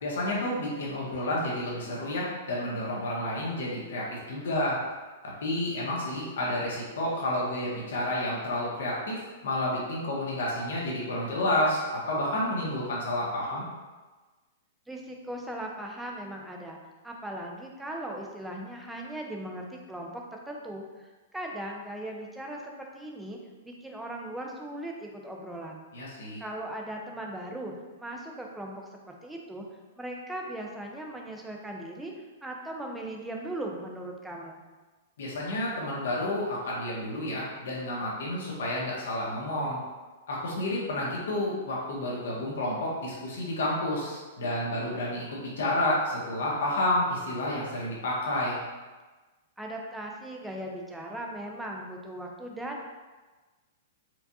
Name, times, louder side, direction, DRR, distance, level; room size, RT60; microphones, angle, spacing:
voice 1, 0.0-4.8 5.4-13.6 25.9-26.4 35.2-39.8 40.3-48.6, left 1 dB, 75° left, -4 dB, 1.1 m, -30 dB
voice 2, 14.9-16.8 17.0-25.8 26.4-27.7 28.0-28.8 29.1-29.7 30.0-32.1 32.4-34.6 49.6-52.9, right 1 dB, 5° right, 0 dB, 0.3 m, -38 dB
4.5 x 2.3 x 2.7 m, 1.3 s
hypercardioid pair, 170°, 0 cm